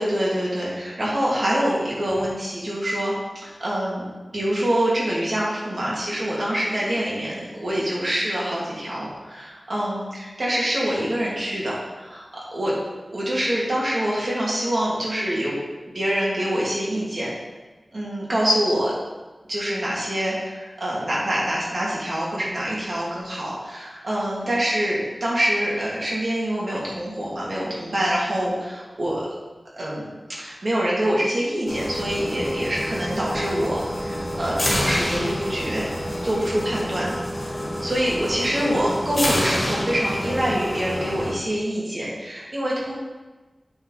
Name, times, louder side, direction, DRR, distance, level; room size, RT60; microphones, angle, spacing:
voice 1, 0.0-4.0 4.3-12.2 12.5-12.8 13.1-15.5 15.9-17.3 17.9-19.0 19.5-29.3 29.7-30.1 30.4-35.9 36.2-43.0, equal, 55° right, -6 dB, 2.5 m, -25 dB
sound 1, 31.7-41.3, equal, 35° left, 1.5 m, -28 dB
7.7 x 5.9 x 4.0 m, 1.2 s
wide cardioid pair, 80°, 0 cm